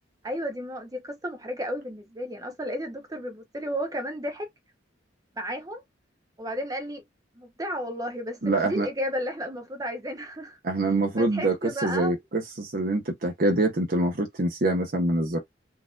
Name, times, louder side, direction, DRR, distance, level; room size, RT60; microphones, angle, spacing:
voice 1, 0.2-4.5 5.4-5.8 6.4-7.0 7.4-12.1, equal, 20° right, 0.6 m, -33 dB
voice 2, 8.4-8.9 10.6-11.6 11.8-15.4, right 2 dB, 50° right, 0.8 m, -25 dB
4.0 x 2.5 x 2.3 m
head